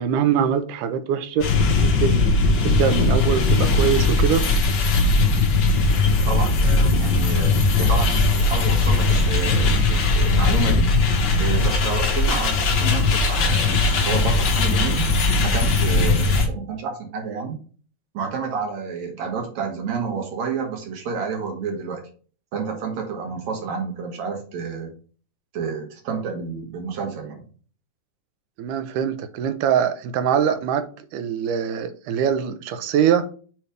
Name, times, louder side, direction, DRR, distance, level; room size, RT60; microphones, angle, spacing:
voice 1, 0.0-1.4 1.7-2.2 2.6-4.5 28.6-33.3, right 8 dB, 85° right, 2.3 m, -23 dB
sound 1, 1.4-16.5, left 3 dB, 75° left, 1.0 m, -19 dB
voice 2, 6.2-10.9 11.4-15.1 15.4-17.6 18.1-22.0 22.5-24.9 25.5-27.4, right 5 dB, 65° right, 2.7 m, -29 dB
7.3 x 3.3 x 5.0 m
omnidirectional pair, 3.6 m